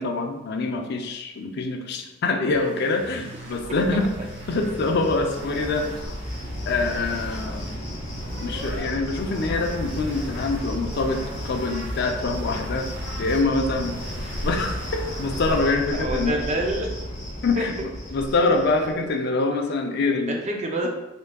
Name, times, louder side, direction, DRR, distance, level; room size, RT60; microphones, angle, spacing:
voice 1, 0.0-4.1 4.5-5.9 6.7-7.7 8.4-12.9 13.2-14.0 14.4-16.4 17.4-17.7 18.1-20.4, left 3 dB, 60° left, 4 dB, 0.4 m, -25 dB
sound 1, 2.5-8.8 9.2-15.6, right 1 dB, 65° right, 0.8 m, -39 dB
Cricket, 3.4-19.1, equal, 35° left, 0.8 m, -33 dB
voice 2, 3.7-4.0 15.9-16.9 17.6-17.7 20.0-20.9, right 1 dB, 35° right, 1 dB, 0.5 m, -28 dB
3.6 x 3.5 x 2.2 m, 0.98 s
head